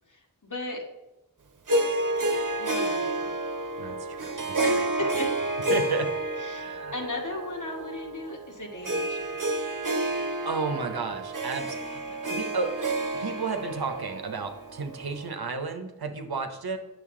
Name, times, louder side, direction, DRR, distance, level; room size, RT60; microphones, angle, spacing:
voice 1, 0.1-0.8 2.6-3.4 4.6-5.5 6.4-6.6 6.9-9.4, left 1 dB, 55° left, 1 dB, 1.6 m, -36 dB
Harp, 1.7-15.3, right 2 dB, 55° right, 0.9 m, -30 dB
voice 2, 3.8-4.8 5.7-6.2 6.5-6.9 10.4-12.9 13.2-16.8, right 4 dB, 85° right, 6 dB, 0.9 m, -33 dB
8.3 x 6.5 x 3.7 m, 1.0 s
wide cardioid pair, 45°, 36 cm